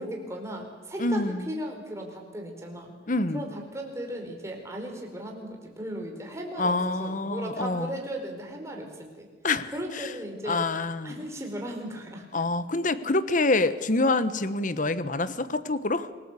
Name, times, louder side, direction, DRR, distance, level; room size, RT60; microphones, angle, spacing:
voice 1, 0.0-2.9 3.3-9.3 9.7-10.7 11.0-12.2, right 1 dB, 15° right, 2 dB, 4.6 m, -36 dB
voice 2, 1.0-1.6 3.1-3.5 6.6-8.0 9.4-10.1 10.4-11.2 12.3-16.1, left 2 dB, 45° left, 13 dB, 1.2 m, -26 dB
27.5 x 19.0 x 8.3 m, 1.4 s
head